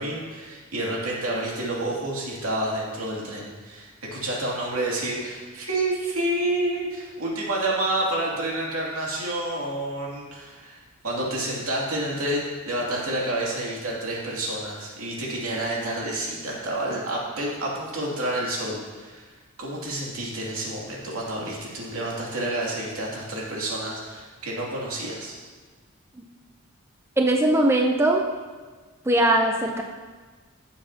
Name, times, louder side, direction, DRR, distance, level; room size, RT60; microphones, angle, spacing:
voice 1, 0.0-19.3 19.6-25.3, right 1 dB, 80° right, -4 dB, 2.5 m, -29 dB
voice 2, 27.2-28.2 29.1-29.8, right 1 dB, 10° right, 2 dB, 0.5 m, -20 dB
15.0 x 7.1 x 2.8 m, 1.4 s
head